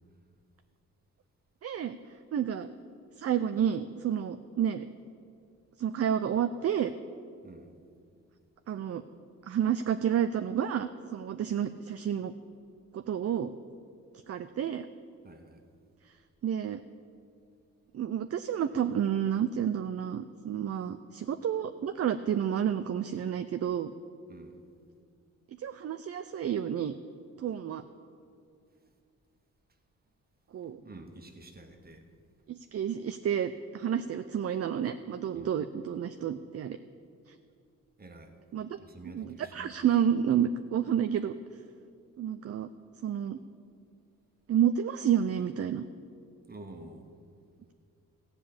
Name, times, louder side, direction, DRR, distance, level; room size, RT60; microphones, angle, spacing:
voice 1, 1.6-2.0 2.3-2.7 3.2-4.9 5.8-6.9 8.7-9.0 9.5-12.3 12.9-13.5 14.3-14.9 16.4-16.8 17.9-23.9 25.6-27.0 27.4-27.8 30.5-30.8 32.5-36.8 37.3-37.4 38.5-38.7 39.1-41.3 42.2-42.7 43.0-43.4 44.5-45.8, right 9 dB, 45° right, 9 dB, 0.5 m, -30 dB
voice 2, 7.4-7.7 15.2-15.6 24.3-24.6 30.8-32.1 35.3-35.6 38.0-38.4 38.8-39.7 46.5-47.1, right 2 dB, 30° right, 5 dB, 1.5 m, -49 dB
15.0 x 5.3 x 8.7 m, 2.4 s
cardioid pair, 70°, 33 cm